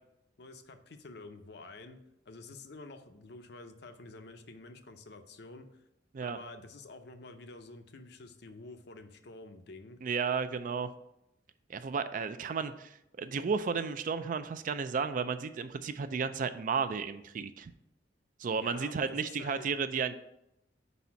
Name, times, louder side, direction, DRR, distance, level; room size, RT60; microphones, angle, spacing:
voice 1, 0.4-5.7 6.2-10.0 18.6-19.7, left 3 dB, 60° left, 7 dB, 0.6 m, -49 dB
voice 2, 10.0-10.9 11.7-17.7 18.4-20.1, right 5 dB, 45° right, 11 dB, 0.4 m, -33 dB
5.1 x 4.2 x 5.7 m, 0.82 s
head